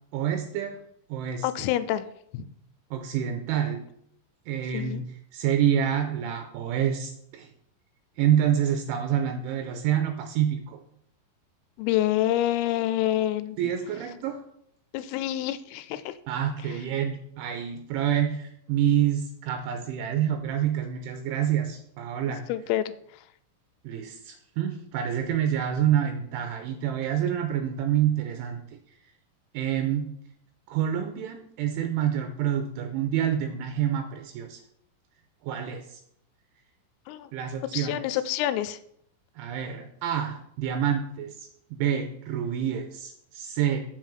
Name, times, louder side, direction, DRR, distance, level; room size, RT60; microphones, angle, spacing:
voice 1, 0.1-0.8 1.1-1.5 2.9-3.8 4.5-7.5 8.2-10.8 13.6-14.4 16.3-22.5 23.8-28.6 29.5-30.1 30.7-34.6 35.4-36.0 37.3-38.2 39.4-41.4 41.7-43.8, right 9 dB, 85° right, 6 dB, 2.9 m, -27 dB
voice 2, 1.4-2.0 2.3-2.5 4.7-5.0 11.8-13.7 14.9-16.1 16.7-16.8 22.3-22.9 37.1-37.3 37.7-38.8, left 13 dB, 85° left, 12 dB, 3.2 m, -27 dB
7.6 x 5.5 x 7.4 m, 0.70 s
omnidirectional pair, 6.0 m